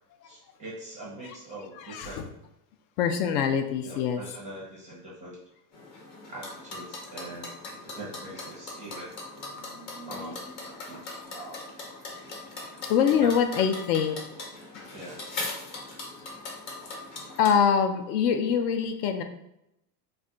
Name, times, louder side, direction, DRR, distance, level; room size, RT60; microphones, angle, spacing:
voice 1, 0.2-2.3 3.8-5.4 6.3-9.2 10.0-10.4 10.9-11.0 11.3-11.6 12.8-12.9 13.1-13.6 14.9-15.3, right 2 dB, 15° right, -5 dB, 0.4 m, -42 dB
voice 2, 1.8-2.3 3.0-4.2 12.8-14.2 14.7-14.8 17.4-19.2, left 7 dB, 65° left, 7 dB, 0.5 m, -24 dB
sound 1, 5.7-17.6, left 2 dB, 35° left, 0.7 m, -40 dB
2.4 x 2.2 x 3.6 m, 0.81 s
supercardioid pair, 145°, 50 cm